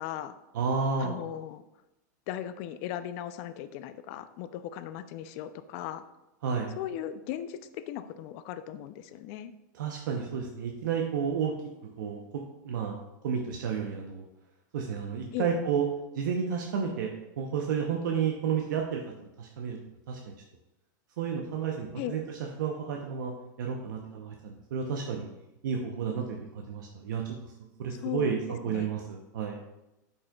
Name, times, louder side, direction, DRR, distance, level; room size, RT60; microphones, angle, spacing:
voice 1, 0.0-0.4 1.0-1.6 2.3-6.0 6.8-9.5 15.3-15.5 22.0-22.1 28.0-28.4 28.6-28.9, left 11 dB, 50° left, 12 dB, 0.5 m, -37 dB
voice 2, 0.5-1.2 6.4-6.7 9.7-11.6 12.0-12.9 13.2-14.2 14.7-15.9 16.1-17.1 17.4-19.0 19.4-19.8 20.1-20.2 21.2-22.2 22.6-23.3 23.6-25.3 25.6-27.4 27.8-29.6, right 6 dB, 75° right, 1 dB, 0.8 m, -31 dB
8.4 x 5.4 x 2.3 m, 0.97 s
supercardioid pair, 125°, 10 cm